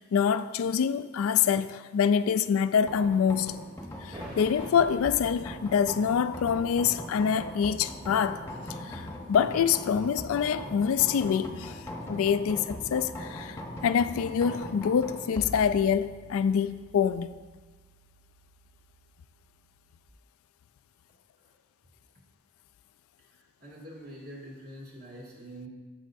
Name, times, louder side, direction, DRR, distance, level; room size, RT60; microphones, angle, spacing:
voice 1, 0.1-3.6 4.0-8.4 8.8-11.8 12.1-17.3, left 7 dB, 70° left, 0.3 m, -26 dB
sound 1, 2.9-20.1, left 1 dB, 15° left, 0.9 m, -41 dB
sound 2, 4.0-11.5, right 1 dB, 20° right, 1.7 m, -50 dB
voice 2, 23.3-25.7, right 1 dB, 45° right, 2.3 m, -45 dB
14.5 x 6.3 x 2.6 m
head